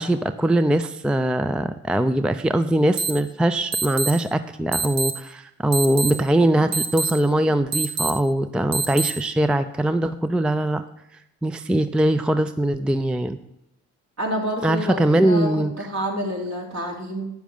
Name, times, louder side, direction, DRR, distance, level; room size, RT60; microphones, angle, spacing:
voice 1, 0.0-10.8 11.4-13.4 14.6-15.7, right 1 dB, 5° right, 11 dB, 0.4 m, -21 dB
sound 1, 3.0-3.1 3.7-4.1 4.7-5.1 5.7-6.1 6.7-7.1 7.7-8.1 8.7-9.1, right 4 dB, 70° right, 1.2 m, -24 dB
voice 2, 14.2-17.3, equal, 50° right, -1 dB, 2.8 m, -28 dB
9.1 x 7.2 x 5.4 m, 0.85 s
hypercardioid pair, 55°, 35 cm